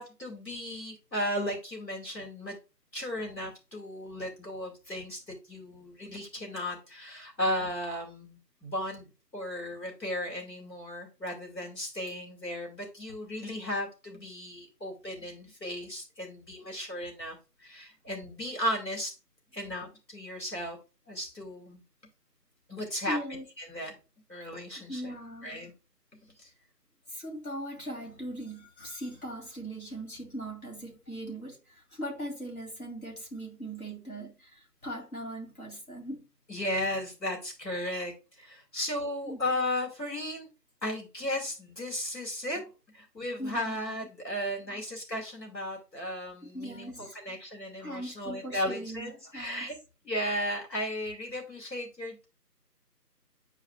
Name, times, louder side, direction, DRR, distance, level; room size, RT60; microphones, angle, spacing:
voice 1, 0.0-2.6 2.9-9.1 9.3-19.2 19.5-20.8 21.1-21.8 22.7-23.2 23.6-23.9 24.3-25.1 25.4-25.7 26.4-26.5 36.5-40.5 40.8-42.6 42.9-49.7 50.0-52.3, left 1 dB, 90° left, 2.5 m, -35 dB
voice 2, 23.1-23.4 24.9-25.6 27.1-36.3 38.7-38.9 39.2-39.4 43.4-44.0 46.4-47.2 47.8-49.7, right 1 dB, 60° left, 3.1 m, -40 dB
9.2 x 4.8 x 2.3 m
figure-of-eight pair, 165°, 49 cm